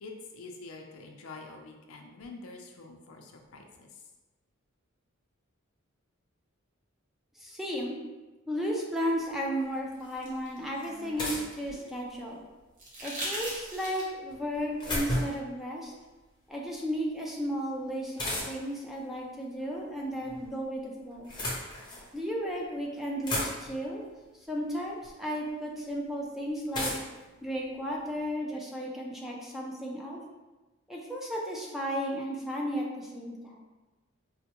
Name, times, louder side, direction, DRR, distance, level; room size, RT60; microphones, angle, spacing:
voice 1, 0.0-4.0, left 3 dB, 85° left, 3 dB, 0.5 m, -46 dB
voice 2, 7.4-8.0 8.5-12.4 13.0-15.9 16.5-21.3 22.1-24.0 24.5-26.9 27.4-30.2 30.9-33.6, equal, ahead, -3 dB, 0.4 m, -34 dB
sound 1, 9.6-11.9 12.8-14.3 16.0-16.1, right 1 dB, 40° right, 0.8 m, -40 dB
sound 2, 10.1-10.2 11.2-12.3 14.3-15.5 18.2-18.8 19.9-20.5 21.1-22.1 22.7-22.8 23.0-23.9 25.0-25.1 26.7-28.3, left 1 dB, 20° left, 0.7 m, -34 dB
4.4 x 2.1 x 2.8 m, 1.2 s
head